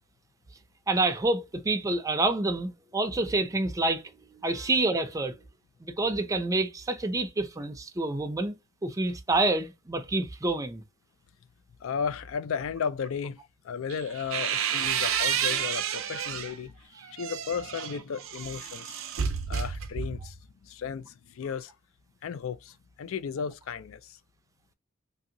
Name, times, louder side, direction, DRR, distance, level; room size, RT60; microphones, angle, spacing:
voice 1, 0.9-5.4 5.8-8.6 8.8-10.8, right 2 dB, 15° right, 0.4 m, -28 dB
voice 2, 11.8-19.0 19.5-20.4 20.6-21.7 22.2-24.2, left 6 dB, 70° left, 0.4 m, -35 dB
sound 1, 13.9-16.6 17.0-20.4, right 8 dB, 65° right, 0.5 m, -30 dB
2.8 x 2.7 x 2.6 m
head